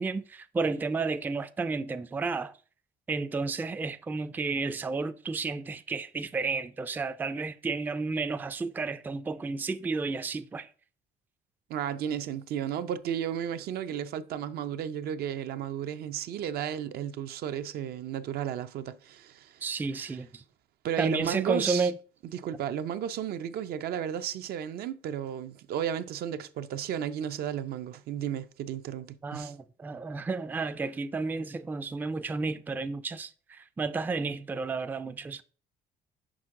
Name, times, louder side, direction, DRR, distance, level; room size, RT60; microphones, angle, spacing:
voice 1, 0.0-2.5 3.1-10.7 19.6-20.4 21.0-22.0 29.2-35.4, right 4 dB, 10° right, 0.3 m, -32 dB
voice 2, 11.7-19.7 20.0-20.1 20.8-21.9 22.3-29.5, right 9 dB, 65° right, 0.5 m, -33 dB
6.1 x 5.2 x 3.6 m
cardioid pair, 110°, 17 cm